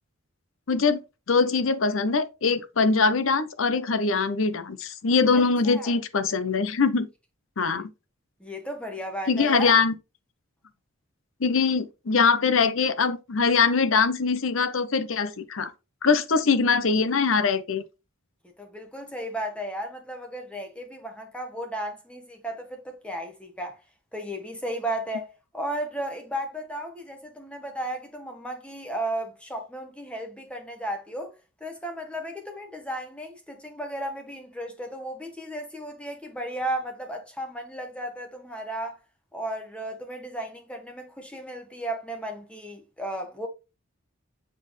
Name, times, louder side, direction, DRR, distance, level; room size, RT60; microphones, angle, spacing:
voice 1, 0.7-1.0 1.3-7.1 7.6-7.9 9.3-9.9 11.4-15.7 16.0-17.8, left 4 dB, 75° left, 0.7 m, -22 dB
voice 2, 5.6-6.0 8.4-9.8 18.6-23.8 24.1-25.3 25.5-31.3 31.6-39.0 39.3-43.5, right 1 dB, 5° left, 1.0 m, -34 dB
7.5 x 4.2 x 3.1 m
head